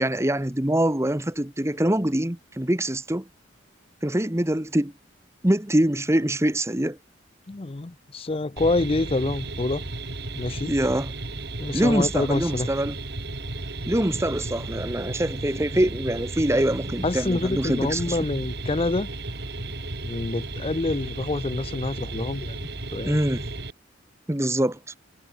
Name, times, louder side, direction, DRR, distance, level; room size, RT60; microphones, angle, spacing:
voice 1, 0.0-3.3 4.0-4.9 5.4-7.0 10.6-11.1 11.7-13.0 13.9-18.2 23.0-23.5 24.3-24.9, right 1 dB, 15° right, 1.3 m, -24 dB
voice 2, 7.5-9.8 10.3-10.7 11.6-12.7 17.0-19.1 20.0-23.2, left 2 dB, 30° left, 0.6 m, -27 dB
sound 1, 8.6-23.7, right 2 dB, 60° right, 3.3 m, -34 dB
head